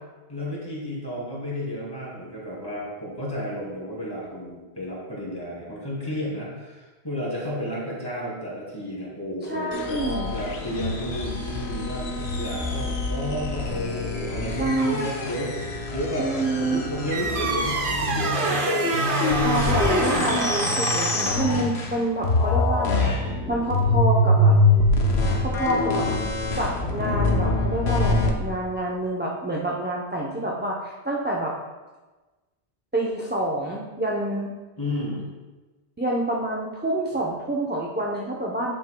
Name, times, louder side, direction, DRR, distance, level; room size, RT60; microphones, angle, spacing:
voice 1, 0.3-16.3 16.6-19.6 34.8-35.3, equal, 20° left, -6 dB, 2.5 m, -32 dB
voice 2, 9.4-10.3 14.6-15.0 16.2-16.8 19.4-24.6 25.4-26.1 26.5-31.5 32.9-34.5 36.0-38.7, right 1 dB, 15° right, -2 dB, 0.5 m, -27 dB
sound 1, 9.7-22.0 22.2-28.3, left 2 dB, 75° left, 1.2 m, -24 dB
sound 2, 17.1-21.5, right 4 dB, 55° right, 0.9 m, -27 dB
9.1 x 8.0 x 2.2 m, 1.2 s
omnidirectional pair, 1.1 m